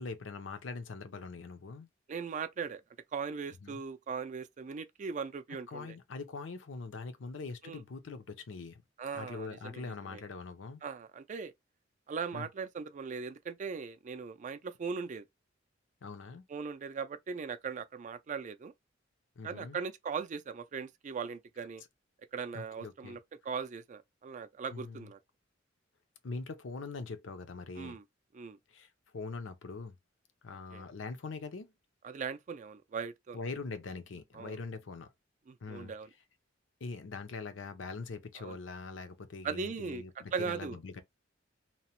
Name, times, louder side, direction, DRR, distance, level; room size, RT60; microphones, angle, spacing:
voice 1, 0.0-1.9 3.6-3.8 5.7-8.8 9.1-10.8 12.3-12.5 16.0-16.4 19.4-19.8 22.5-23.2 24.7-25.1 26.2-28.0 28.7-28.9 29.1-29.9 30.4-31.7 33.3-35.1 35.6-35.9 36.8-41.0, left 4 dB, 70° left, 0.5 m, -42 dB
voice 2, 2.1-2.8 3.1-6.0 7.6-7.8 9.0-10.2 10.8-11.5 12.1-15.3 16.5-18.7 19.4-21.8 22.3-25.2 27.8-28.0 28.3-28.6 30.7-30.8 32.0-33.4 34.3-34.6 35.5-36.1 38.4-38.6 39.4-40.0 40.3-40.8, right 5 dB, 40° right, 0.3 m, -39 dB
2.9 x 2.0 x 2.9 m
head